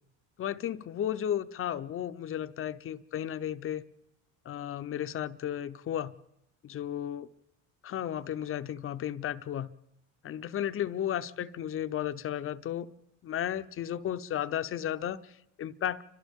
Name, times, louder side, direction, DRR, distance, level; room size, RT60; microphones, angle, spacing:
voice 1, 0.4-3.8 4.4-6.1 6.6-7.3 7.8-9.7 10.2-12.9 13.2-16.0, left 10 dB, 40° left, 0.7 m, -34 dB
29.5 x 25.5 x 3.7 m
cardioid pair, 110°, 33 cm